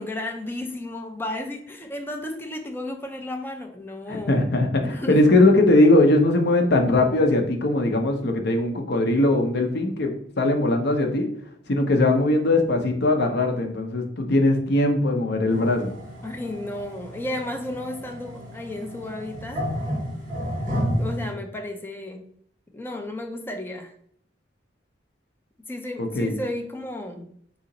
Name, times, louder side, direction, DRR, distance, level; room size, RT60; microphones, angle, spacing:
voice 1, 0.0-4.5 4.8-5.3 16.2-19.7 20.9-22.3 22.7-23.9 25.7-27.3, left 1 dB, 10° left, 4 dB, 0.5 m, -33 dB
voice 2, 4.1-11.3 11.7-15.9 26.0-26.3, left 2 dB, 65° left, 4 dB, 0.7 m, -20 dB
sound 1, 15.5-21.3, equal, 50° right, 1.4 m, -31 dB
4.1 x 2.8 x 3.9 m, 0.63 s
head